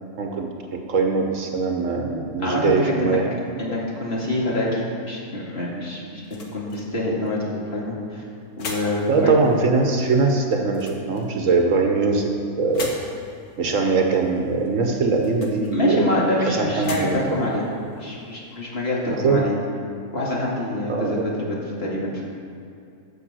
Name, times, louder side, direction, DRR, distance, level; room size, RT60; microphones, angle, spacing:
voice 1, 0.9-3.3 3.7-3.8 9.1-13.0 13.6-17.4 19.1-19.4 20.9-21.2, right 4 dB, 60° right, 3 dB, 1.2 m, -22 dB
voice 2, 2.4-3.2 3.6-8.2 8.6-9.5 15.7-17.7 17.9-19.5 20.1-22.2, left 1 dB, 40° left, -4 dB, 2.2 m, -26 dB
sound 1, 5.5-18.9, left 3 dB, 75° left, 1.8 m, -42 dB
12.5 x 5.4 x 7.6 m, 2.5 s
omnidirectional pair, 1.6 m